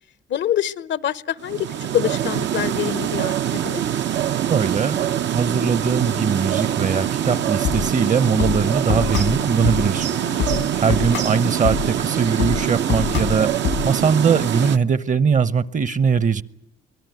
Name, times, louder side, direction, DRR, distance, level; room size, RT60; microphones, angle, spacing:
voice 1, 0.3-1.7 1.9-3.8, left 10 dB, 65° left, 18 dB, 0.8 m, -25 dB
sound 1, 1.4-14.8, right 10 dB, 65° right, 0.9 m, -24 dB
voice 2, 4.5-5.0 5.3-10.1 10.4-16.4, right 6 dB, 40° right, 18 dB, 1.0 m, -21 dB
sound 2, 7.2-13.9, left 10 dB, 85° left, 1.8 m, -27 dB
24.5 x 18.5 x 9.3 m, 0.79 s
cardioid pair, 90°, 20 cm